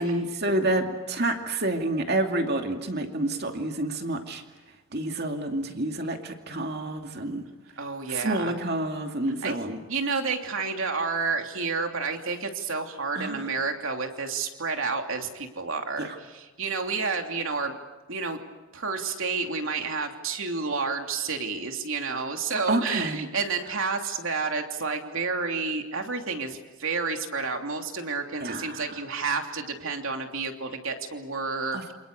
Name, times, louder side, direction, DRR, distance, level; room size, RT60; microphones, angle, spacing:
voice 1, 0.0-4.4 4.9-7.4 8.1-9.8 13.1-13.4 16.0-16.2 22.7-23.3 28.4-29.0 31.7-31.9, right 1 dB, 50° right, 4 dB, 2.6 m, -28 dB
voice 2, 7.8-8.6 9.4-9.5 9.9-17.8 18.1-18.4 18.7-31.9, right 4 dB, 70° right, 4 dB, 3.0 m, -30 dB
28.5 x 27.0 x 6.8 m, 1.2 s
head